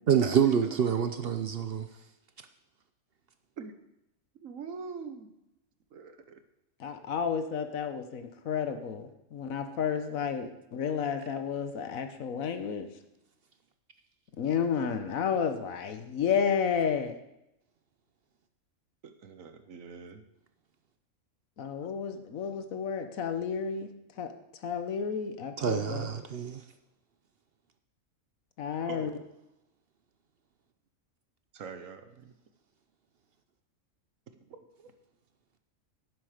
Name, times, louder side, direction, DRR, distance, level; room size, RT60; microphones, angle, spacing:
voice 1, 0.1-1.9 25.6-26.6, right 8 dB, 55° right, 8 dB, 0.7 m, -27 dB
voice 2, 4.4-5.3 5.9-6.2 19.2-20.2 28.9-29.2 31.5-32.3 34.5-34.9, right 5 dB, 75° right, 9 dB, 1.4 m, -43 dB
voice 3, 6.8-12.9 14.4-17.1 21.6-23.9 24.2-24.3 24.6-26.1 28.6-29.1, left 7 dB, 75° left, 8 dB, 1.4 m, -31 dB
11.0 x 10.0 x 5.0 m, 0.86 s
omnidirectional pair, 1.4 m